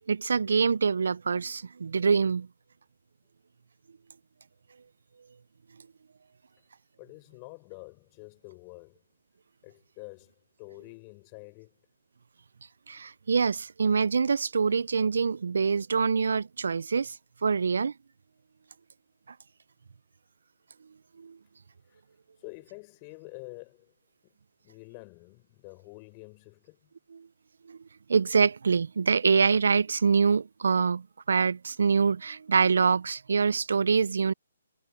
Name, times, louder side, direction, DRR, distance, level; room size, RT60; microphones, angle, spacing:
voice 1, 0.1-2.5 12.9-17.1 17.4-17.9 21.2-21.4 27.1-27.2 27.7-27.8 28.1-34.3, right 5 dB, 75° right, 0.4 m, -25 dB
voice 2, 7.0-9.0 9.6-10.3 10.6-11.8 21.9-22.0 22.4-23.9 24.2-24.3 24.6-26.9, left 33 dB, 30° left, 6.6 m, -47 dB
hypercardioid pair, 150°, 0 cm